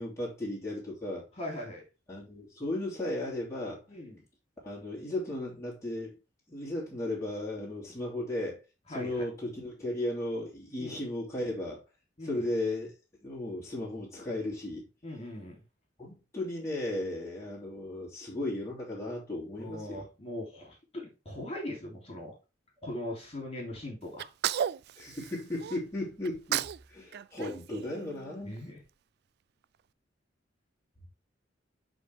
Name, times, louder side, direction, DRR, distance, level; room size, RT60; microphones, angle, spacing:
voice 1, 0.0-1.2 2.1-3.8 4.6-6.1 6.5-8.6 8.9-11.8 12.2-12.9 13.2-14.8 16.0-20.0 25.0-28.6, left 1 dB, 15° left, 3.0 m, -35 dB
voice 2, 1.4-1.8 3.9-4.2 8.9-9.2 10.8-11.0 12.2-12.5 15.0-15.6 19.6-22.3 22.8-24.3 28.4-28.8, left 1 dB, 35° left, 3.2 m, -40 dB
Sneeze, 24.2-25.8 26.2-26.8 27.1-28.6, right 10 dB, 60° right, 0.3 m, -34 dB
11.0 x 4.0 x 3.5 m
head